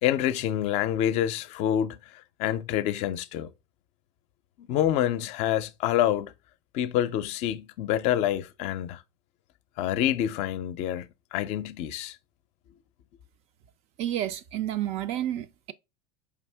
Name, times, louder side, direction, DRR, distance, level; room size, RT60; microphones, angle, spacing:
voice 1, 0.0-2.0 2.4-3.5 4.7-6.3 6.7-9.0 9.8-12.2, left 11 dB, 55° left, 0.5 m, -27 dB
voice 2, 14.0-15.7, right 12 dB, 50° right, 0.4 m, -30 dB
5.0 x 2.6 x 3.3 m
hypercardioid pair, 85°, 14 cm